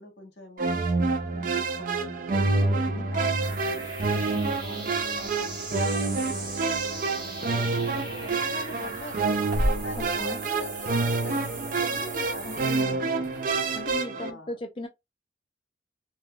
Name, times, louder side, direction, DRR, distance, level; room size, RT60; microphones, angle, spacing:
voice 1, 0.0-3.9 4.4-9.3 9.8-13.4 14.1-14.6, left 1 dB, 75° left, 1.3 m, -44 dB
sound 1, 0.6-14.3, right 3 dB, 50° right, 0.4 m, -27 dB
voice 2, 2.5-3.1 4.3-4.7 9.9-10.4 12.4-13.0 13.7-14.9, left 1 dB, 30° left, 0.4 m, -38 dB
sound 2, 3.4-12.8, right 3 dB, 25° right, 1.0 m, -40 dB
sound 3, 7.7-14.0, equal, 75° right, 1.2 m, -36 dB
3.3 x 2.3 x 2.2 m
head